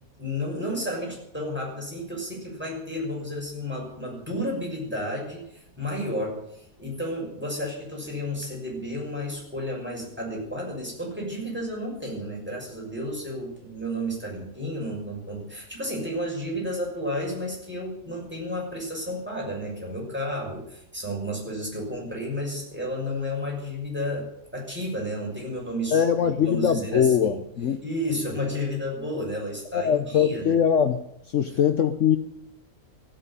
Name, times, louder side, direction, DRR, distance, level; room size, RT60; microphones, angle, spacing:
voice 1, 0.2-26.0 26.3-27.4 27.8-30.6, equal, 5° right, -3 dB, 6.2 m, -32 dB
voice 2, 25.9-27.8 29.7-31.0 31.3-32.2, left 8 dB, 60° left, 9 dB, 1.1 m, -22 dB
15.5 x 8.9 x 9.9 m, 0.78 s
omnidirectional pair, 1.6 m